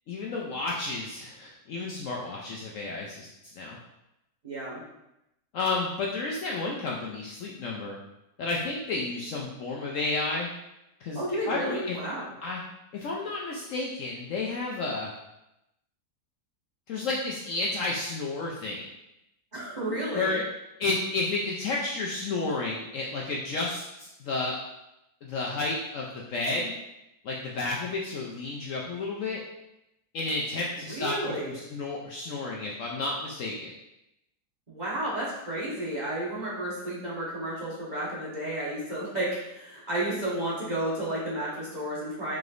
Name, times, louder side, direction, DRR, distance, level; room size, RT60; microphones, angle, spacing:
voice 1, 0.1-3.3 3.6-3.8 5.5-8.0 8.4-10.5 11.0-11.2 11.5-12.0 12.4-12.6 12.9-15.1 16.9-18.8 20.1-20.4 20.8-24.6 25.2-26.7 27.2-29.4 30.1-33.7, left 3 dB, 70° left, -2 dB, 0.8 m, -31 dB
voice 2, 4.4-4.8 11.1-12.3 19.5-20.4 30.9-31.6 34.7-42.4, right 1 dB, 30° right, -8 dB, 1.1 m, -32 dB
4.9 x 3.8 x 2.5 m, 0.88 s
omnidirectional pair, 1.7 m